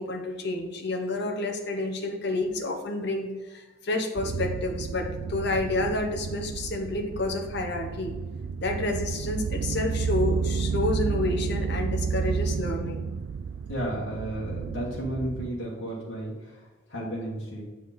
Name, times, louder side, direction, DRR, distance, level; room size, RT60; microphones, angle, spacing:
voice 1, 0.0-8.1 8.6-13.1, left 2 dB, 55° left, 3 dB, 1.0 m, -29 dB
sound 1, 4.2-15.5, right 5 dB, 75° right, 0.4 m, -31 dB
voice 2, 13.7-17.6, right 1 dB, 85° left, -5 dB, 1.5 m, -33 dB
7.6 x 5.0 x 4.2 m, 1.2 s
head